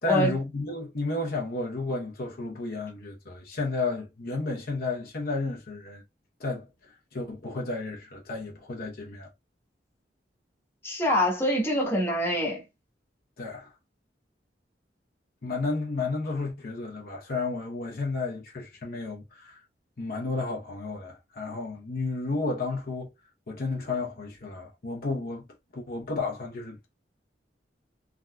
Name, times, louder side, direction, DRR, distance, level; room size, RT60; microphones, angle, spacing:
voice 1, 0.0-6.0 6.4-9.3 13.4-13.7 15.4-19.6 20.0-23.1 23.5-25.5 25.7-26.9, left 3 dB, 55° left, 0.8 m, -32 dB
voice 2, 10.8-12.6, equal, 15° left, 1.1 m, -25 dB
3.6 x 2.6 x 2.2 m
head